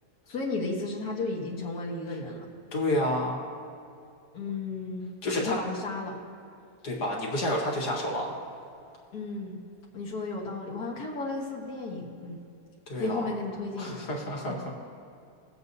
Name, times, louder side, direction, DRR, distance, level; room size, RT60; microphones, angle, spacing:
voice 1, 0.3-2.4 4.3-5.0 5.4-6.1 9.1-9.6 9.9-12.4 12.9-14.1 14.5-14.6, left 3 dB, 70° left, -3 dB, 1.9 m, -34 dB
voice 2, 2.7-3.4 5.2-5.6 6.8-8.3 12.9-13.2 13.8-14.8, left 1 dB, 90° left, -1 dB, 2.1 m, -29 dB
23.0 x 7.8 x 2.7 m, 2.5 s
omnidirectional pair, 1.7 m